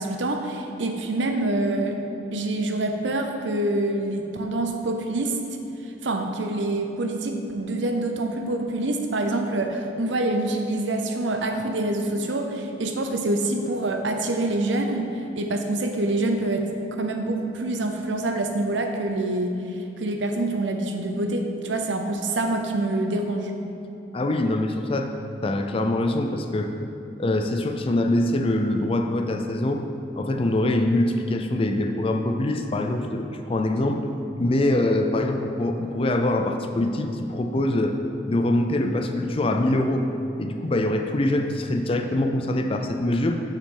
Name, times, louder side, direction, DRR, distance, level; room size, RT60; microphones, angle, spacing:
voice 1, 0.0-2.0 2.3-5.4 6.0-16.7 17.0-19.6 20.0-23.5, right 2 dB, 85° right, 4 dB, 0.6 m, -26 dB
voice 2, 24.1-25.1 25.4-26.7 27.2-29.8 30.2-34.0 34.4-38.0 38.3-40.1 40.4-43.4, left 1 dB, 30° left, 5 dB, 0.4 m, -24 dB
6.7 x 5.8 x 3.8 m, 2.8 s
head